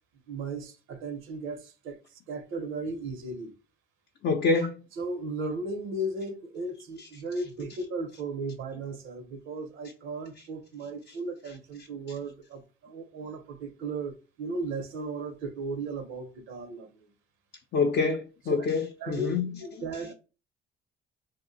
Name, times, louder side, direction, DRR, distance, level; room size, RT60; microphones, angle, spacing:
voice 1, 0.3-2.0 2.3-3.5 5.0-17.1 18.5-18.7 19.0-19.3 19.6-20.1, right 2 dB, 85° right, 0.7 m, -36 dB
voice 2, 4.2-4.8 11.1-11.2 17.7-19.6, left 4 dB, 65° left, 0.5 m, -26 dB
2.5 x 2.1 x 3.8 m
cardioid pair, 90°, 20 cm